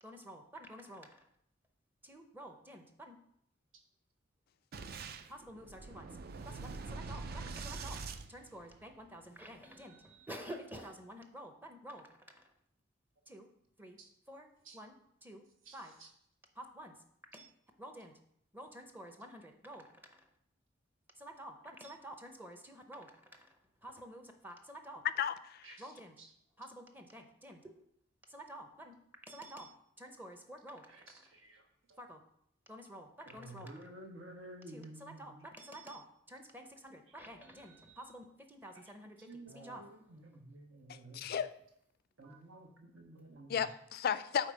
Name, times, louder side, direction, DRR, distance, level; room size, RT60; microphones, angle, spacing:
voice 1, 0.0-1.3 2.0-3.2 5.3-6.2 6.4-8.0 8.3-12.5 13.3-13.5 13.8-14.0 14.3-14.5 14.7-14.9 15.2-15.4 15.7-15.9 16.6-17.0 17.3-17.5 17.8-18.1 18.5-20.3 21.2-25.0 25.8-26.2 26.6-27.9 28.3-28.9 29.3-31.3 32.0-32.2 32.7-33.7 34.7-39.2 39.5-39.9 42.2-42.4, right 1 dB, 10° right, 4 dB, 0.6 m, -50 dB
Boom, 4.7-9.1, right 4 dB, 50° right, 0.4 m, -44 dB
voice 2, 15.6-16.1 25.6-25.9 26.2-26.3 30.9-32.0 33.3-35.5 38.7-38.9 39.2-41.4 42.2-43.7, right 2 dB, 75° right, 2 dB, 1.3 m, -53 dB
voice 3, 25.2-25.8 40.9-41.5 43.5-44.5, left 8 dB, 50° left, 14 dB, 0.3 m, -35 dB
5.2 x 4.4 x 6.2 m, 0.71 s
head